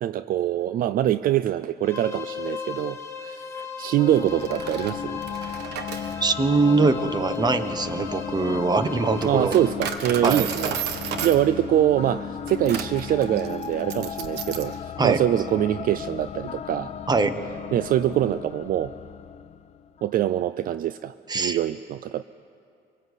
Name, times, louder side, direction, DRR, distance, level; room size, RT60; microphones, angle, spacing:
voice 1, 0.0-5.2 9.2-10.7 11.2-16.9 17.7-18.9 20.0-22.2, right 12 dB, 55° right, 14 dB, 0.5 m, -24 dB
sound 1, 1.8-9.7, left 5 dB, 20° left, 2.2 m, -37 dB
sound 2, 4.0-20.2, left 8 dB, 40° left, 0.8 m, -35 dB
Coin (dropping), 4.3-14.8, right 8 dB, 80° right, 1.3 m, -34 dB
voice 2, 6.2-9.6 10.2-10.5 15.0-15.2 17.1-17.4 21.3-21.6, right 3 dB, 25° right, 11 dB, 1.3 m, -22 dB
24.5 x 20.0 x 8.2 m, 2.5 s
cardioid pair, 110°, 17 cm